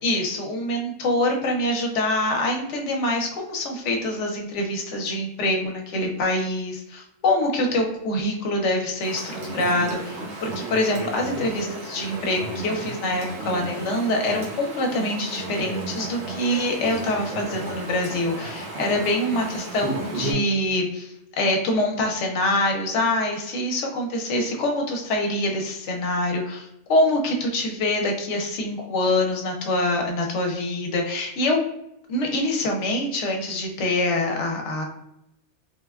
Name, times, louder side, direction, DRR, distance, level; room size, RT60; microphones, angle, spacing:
voice 1, 0.0-31.6 32.1-34.8, left 1 dB, 70° left, 2 dB, 0.9 m, -25 dB
Chatter / Stream, 9.0-20.3, right 2 dB, 80° right, 1.3 m, -33 dB
3.5 x 2.1 x 2.3 m, 0.82 s
omnidirectional pair, 1.3 m